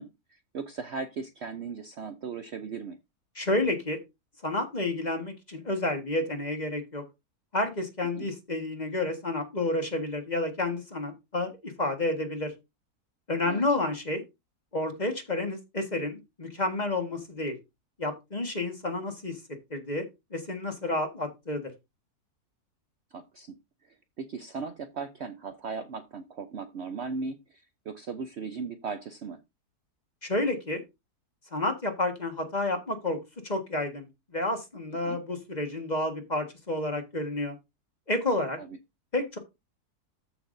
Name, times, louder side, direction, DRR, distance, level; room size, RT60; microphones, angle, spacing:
voice 1, 0.0-3.0 8.2-8.3 13.4-13.6 23.1-23.6 23.8-29.4 35.0-35.2 38.6-38.8, right 5 dB, 55° right, 9 dB, 0.8 m, -38 dB
voice 2, 3.3-4.0 4.4-7.0 7.5-12.5 13.3-14.2 14.7-17.5 18.0-19.4 19.7-20.1 20.3-21.7 30.2-30.8 31.5-33.2 33.4-34.1 34.3-37.5 38.1-38.6 39.1-39.4, left 2 dB, 30° left, 5 dB, 1.6 m, -30 dB
13.5 x 5.9 x 2.6 m, 0.23 s
omnidirectional pair, 1.7 m